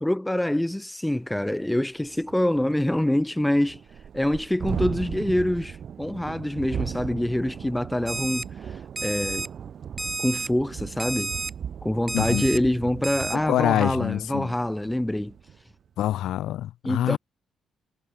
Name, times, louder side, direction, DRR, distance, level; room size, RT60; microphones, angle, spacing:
voice 1, 0.0-3.8 4.1-8.8 9.0-9.5 10.2-11.3 11.8-15.3 16.8-17.2, left 1 dB, 10° left, 0.4 m, -25 dB
Thunderstorm, 1.1-1.2 1.6-1.7 2.0-15.6, right 8 dB, 60° right, 1.3 m, -37 dB
Alarm, 8.1-8.4 9.0-9.5 10.0-10.5 11.0-11.5 12.1-12.6 13.0-13.4, right 3 dB, 35° right, 1.6 m, -31 dB
voice 2, 12.1-12.4 13.3-14.5 16.0-17.2, left 13 dB, 75° left, 0.7 m, -25 dB
hypercardioid pair, 50°, 0 cm